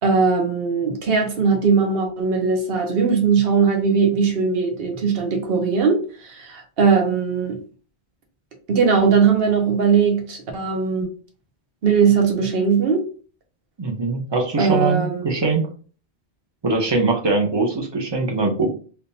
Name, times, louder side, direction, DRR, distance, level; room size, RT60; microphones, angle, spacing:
voice 1, 0.0-7.6 8.7-11.1 11.8-13.0 14.6-15.2, right 5 dB, 60° right, 3 dB, 1.0 m, -19 dB
voice 2, 13.8-15.7 16.6-18.7, right 3 dB, 30° right, 1 dB, 0.6 m, -22 dB
3.5 x 2.8 x 2.7 m, 0.39 s
omnidirectional pair, 1.2 m